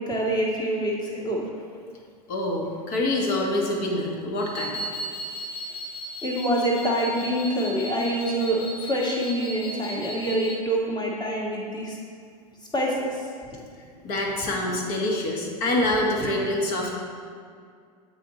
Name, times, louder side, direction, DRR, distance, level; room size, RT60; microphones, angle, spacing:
voice 1, 0.0-1.4 6.2-12.0 12.7-13.3, right 1 dB, 20° left, -3 dB, 1.5 m, -26 dB
voice 2, 2.3-4.8 14.0-16.9, left 1 dB, 45° left, 0 dB, 1.3 m, -26 dB
sound 1, 4.4-10.6, right 1 dB, 70° left, 1.8 m, -36 dB
8.1 x 4.2 x 4.0 m, 2.2 s
figure-of-eight pair, 90°, 21 cm